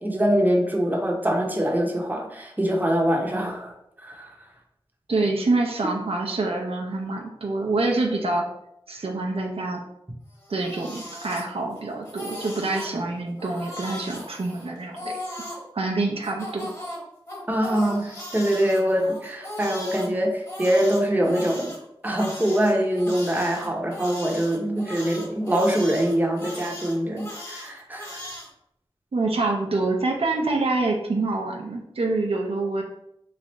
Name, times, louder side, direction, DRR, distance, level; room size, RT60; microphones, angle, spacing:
voice 1, 0.0-3.7 4.0-4.3 5.8-5.9 17.5-21.7 22.0-28.2, equal, 15° right, 0 dB, 0.7 m, -24 dB
voice 2, 5.1-8.4 8.9-9.8 10.5-15.1 15.7-16.7 29.1-32.8, right 2 dB, 75° right, 1 dB, 0.6 m, -26 dB
Crying sobbing, 10.3-11.8 12.0-12.9 13.4-15.6 16.2-20.1 20.5-28.5, left 1 dB, 30° left, 1.3 m, -38 dB
3.2 x 2.4 x 4.0 m, 0.79 s
wide cardioid pair, 65°, 10 cm